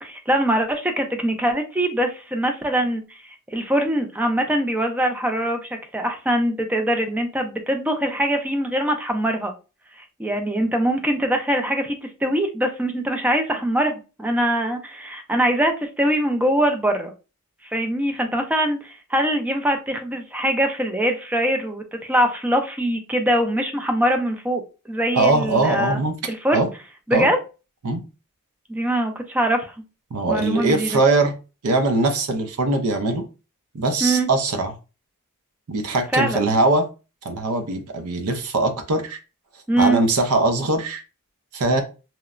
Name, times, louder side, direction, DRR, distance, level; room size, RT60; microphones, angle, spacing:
voice 1, 0.0-3.2 3.5-9.5 10.2-12.0 12.2-17.1 17.7-24.6 24.9-26.0 26.3-26.6 27.1-27.4 28.7-29.7 30.3-31.0 34.0-34.3 36.1-36.5 39.7-40.0, right 1 dB, 5° right, 0.4 m, -22 dB
voice 2, 25.1-26.2 26.5-26.7 27.1-27.3 27.8-28.0 30.1-31.3 31.6-33.3 33.7-34.7 35.7-36.9 37.2-39.2 39.8-41.0 41.5-41.8, right 2 dB, 80° right, 0.5 m, -21 dB
2.9 x 2.0 x 2.4 m
head